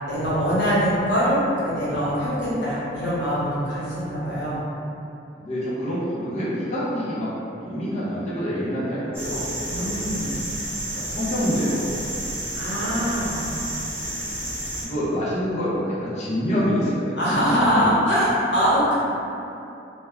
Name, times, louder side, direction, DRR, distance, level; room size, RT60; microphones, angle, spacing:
voice 1, 0.1-4.6 9.6-10.2 12.5-13.4 17.2-19.0, equal, 70° left, -10 dB, 1.0 m, -23 dB
voice 2, 5.3-7.3 7.6-10.3 10.9-12.1 12.8-13.0 14.3-14.4 14.8-18.0, equal, 40° left, -9 dB, 0.6 m, -27 dB
sound 1, 9.1-14.8, right 1 dB, 15° right, 0.6 m, -31 dB
2.3 x 2.1 x 3.0 m, 2.8 s
head